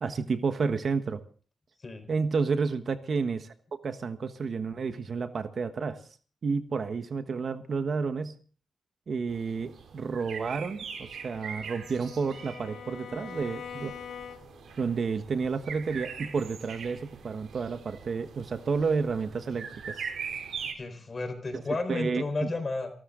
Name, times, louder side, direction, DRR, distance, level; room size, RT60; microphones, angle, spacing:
voice 1, 0.0-1.2 2.1-3.5 3.8-6.0 6.4-8.4 9.1-14.0 14.8-20.1 21.9-22.2, right 5 dB, 50° right, 10 dB, 1.3 m, -30 dB
sound 1, 9.3-20.7, right 6 dB, 80° right, 3.6 m, -42 dB
Bowed string instrument, 10.9-14.7, left 8 dB, 80° left, 1.4 m, -44 dB
voice 2, 20.7-22.9, left 3 dB, 30° left, 9 dB, 4.3 m, -32 dB
28.5 x 13.0 x 3.8 m, 0.41 s
wide cardioid pair, 140°, 0 cm